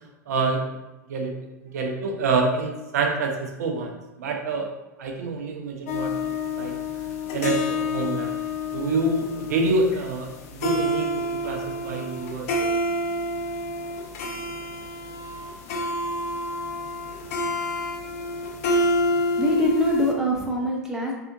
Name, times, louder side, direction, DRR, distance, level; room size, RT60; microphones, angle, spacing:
voice 1, 0.3-0.6 1.1-1.3 1.6-4.7 5.0-6.1 6.6-6.7 7.3-8.4 8.7-10.3 10.6-12.7, right 3 dB, 60° right, 2 dB, 0.5 m, -26 dB
sound 1, 5.9-20.1, left 1 dB, 55° left, 0.4 m, -28 dB
voice 2, 19.2-21.1, left 1 dB, 5° right, -1 dB, 0.5 m, -24 dB
3.6 x 2.5 x 2.5 m, 1.0 s
figure-of-eight pair, 90°, 10 cm